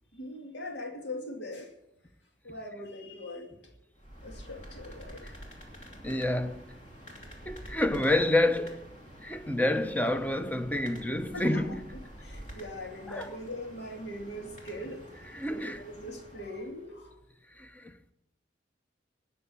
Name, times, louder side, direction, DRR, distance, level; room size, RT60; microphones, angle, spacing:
voice 1, 0.1-1.7 2.4-3.5 4.2-5.2 11.3-11.8 12.2-15.1 15.5-17.1, left 1 dB, 65° left, 2.5 m, -41 dB
sound 1, 3.9-16.9, equal, 40° left, 3.0 m, -48 dB
voice 2, 6.0-6.8 7.5-8.9 9.2-11.8 13.1-13.3 14.8-14.9 15.3-15.8 17.6-17.9, left 1 dB, 10° left, 0.7 m, -28 dB
19.5 x 6.9 x 6.9 m
head